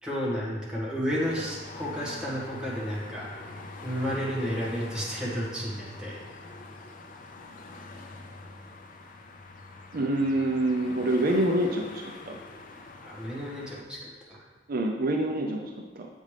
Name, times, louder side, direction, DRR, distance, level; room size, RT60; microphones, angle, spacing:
voice 1, 0.0-6.2 13.0-14.0 14.3-14.4, equal, 5° right, -7 dB, 1.6 m, -32 dB
sound 1, 1.1-13.8, left 2 dB, 50° left, 0.5 m, -44 dB
voice 2, 9.9-12.4 14.7-16.1, right 1 dB, 55° right, 2 dB, 0.5 m, -27 dB
7.3 x 5.2 x 3.3 m, 1.4 s
head